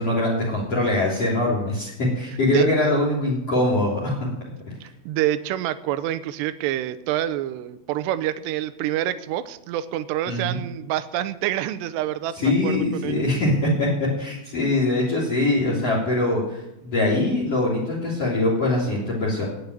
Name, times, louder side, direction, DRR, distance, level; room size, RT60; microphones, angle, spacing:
voice 1, 0.0-4.3 10.3-10.6 12.3-13.9 14.2-19.5, left 2 dB, 35° left, -3 dB, 4.0 m, -23 dB
voice 2, 4.8-13.2, right 13 dB, 80° right, 13 dB, 2.6 m, -27 dB
18.0 x 6.6 x 9.8 m, 0.86 s
omnidirectional pair, 5.5 m